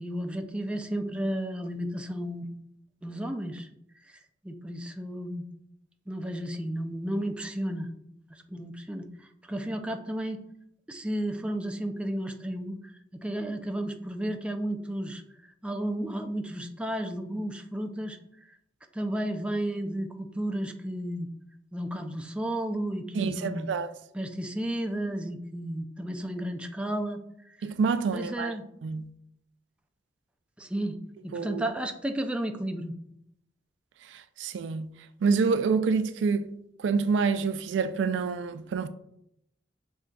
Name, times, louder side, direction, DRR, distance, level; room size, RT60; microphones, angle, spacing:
voice 1, 0.0-2.6 3.0-3.7 4.1-5.5 6.1-7.9 8.3-10.4 10.9-15.2 15.6-18.2 18.9-21.3 21.7-23.7 24.1-27.2 27.5-27.7 28.1-28.6 30.6-31.0 31.2-33.0, right 1 dB, 5° right, 0.3 m, -33 dB
voice 2, 23.1-23.9 27.6-28.5 28.8-29.1 31.3-31.6 34.1-34.9 35.2-36.5 36.8-38.9, right 5 dB, 85° right, 0.3 m, -27 dB
6.3 x 3.5 x 2.2 m
head